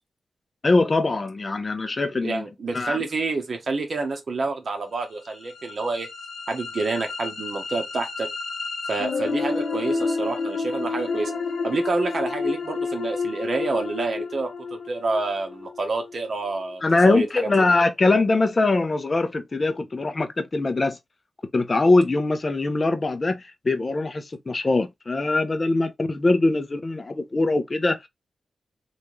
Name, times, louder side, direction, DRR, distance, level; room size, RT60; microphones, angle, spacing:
voice 1, 0.6-2.5 2.7-3.0 16.8-21.0 21.5-28.1, left 2 dB, 35° left, 0.7 m, -22 dB
voice 2, 2.2-6.1 6.5-8.3 8.9-11.3 11.6-17.6, right 3 dB, 55° right, 1.0 m, -28 dB
sound 1, 5.2-17.2, left 4 dB, 65° left, 0.9 m, -30 dB
3.4 x 2.6 x 3.1 m
cardioid pair, 85°, 0 cm